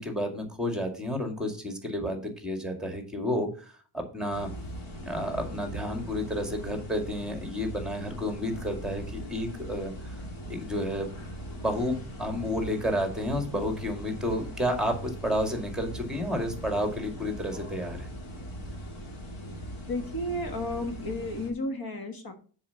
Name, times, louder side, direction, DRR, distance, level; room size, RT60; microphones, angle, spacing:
voice 1, 0.0-4.5 5.0-18.1, equal, ahead, 4 dB, 2.1 m, -31 dB
sound 1, 4.3-21.5, equal, 90° left, 2.7 m, -40 dB
voice 2, 19.9-22.3, left 1 dB, 50° left, 5 dB, 1.6 m, -32 dB
7.4 x 5.7 x 5.7 m, 0.39 s
wide cardioid pair, 125°, 46 cm